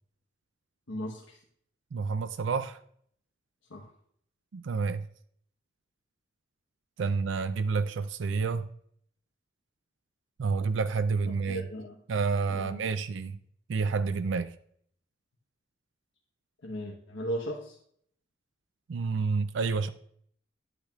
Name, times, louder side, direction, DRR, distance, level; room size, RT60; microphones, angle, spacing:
voice 1, 0.9-1.4 3.7-3.9 11.5-12.0 12.5-12.8 16.6-17.7, equal, 90° left, -1 dB, 1.1 m, -36 dB
voice 2, 1.9-2.8 4.5-5.0 7.0-8.7 10.4-11.6 12.1-13.4 13.7-14.5 18.9-19.9, right 4 dB, 75° right, 11 dB, 0.4 m, -29 dB
10.5 x 8.3 x 2.4 m, 0.64 s
head